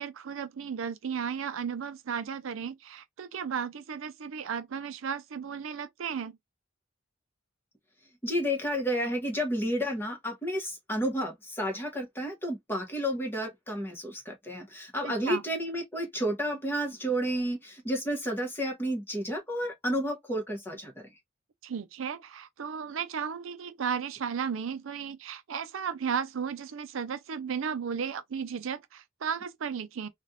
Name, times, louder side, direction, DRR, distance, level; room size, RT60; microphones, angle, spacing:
voice 1, 0.0-6.4 15.0-15.4 21.6-30.1, right 7 dB, 85° right, 0.5 m, -34 dB
voice 2, 8.2-21.1, equal, 10° left, 1.0 m, -31 dB
3.2 x 2.3 x 2.7 m
head